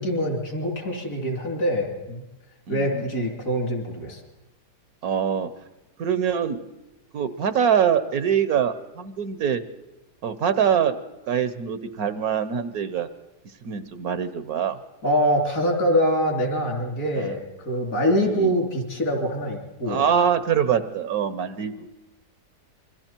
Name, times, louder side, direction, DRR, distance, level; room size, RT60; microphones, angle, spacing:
voice 1, 0.0-2.2 2.7-4.2 15.0-20.1, equal, 65° left, 2 dB, 4.1 m, -24 dB
voice 2, 2.7-3.1 5.0-5.5 6.0-6.6 7.1-9.6 10.2-11.0 11.3-13.1 13.6-14.8 17.2-17.4 18.2-18.5 19.9-21.9, right 8 dB, 65° right, 13 dB, 1.3 m, -24 dB
26.5 x 23.0 x 4.5 m, 1.0 s
omnidirectional pair, 1.8 m